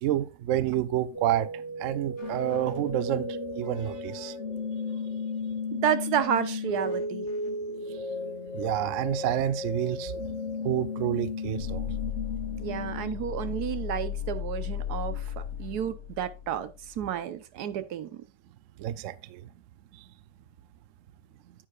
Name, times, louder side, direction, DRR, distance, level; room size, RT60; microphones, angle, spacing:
voice 1, 0.0-3.3 3.6-4.3 8.5-10.2 10.6-11.9 18.8-19.5 19.9-20.0, right 12 dB, 85° right, 0.6 m, -29 dB
sound 1, 1.1-13.2, left 3 dB, 45° left, 1.4 m, -35 dB
voice 2, 5.7-7.3 12.6-18.2, right 9 dB, 65° right, 1.2 m, -31 dB
sound 2, 11.6-17.0, left 10 dB, 85° left, 1.4 m, -35 dB
9.6 x 8.7 x 2.4 m
omnidirectional pair, 1.9 m